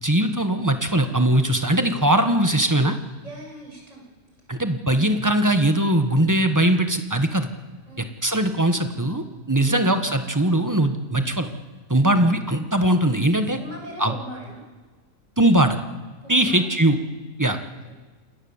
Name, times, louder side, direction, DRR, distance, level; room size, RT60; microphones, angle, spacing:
voice 1, 0.0-3.0 4.5-7.5 8.2-11.5 11.9-13.6 14.0-14.1 15.4-15.8 16.3-17.0 17.4-17.6, right 1 dB, 10° right, 7 dB, 1.3 m, -20 dB
voice 2, 3.2-4.1 7.9-8.1 9.6-9.9 12.4-12.5 13.5-14.7 16.2-16.7 17.5-17.9, right 1 dB, 45° right, 0 dB, 7.1 m, -40 dB
28.0 x 20.5 x 7.4 m, 1.3 s
omnidirectional pair, 1.7 m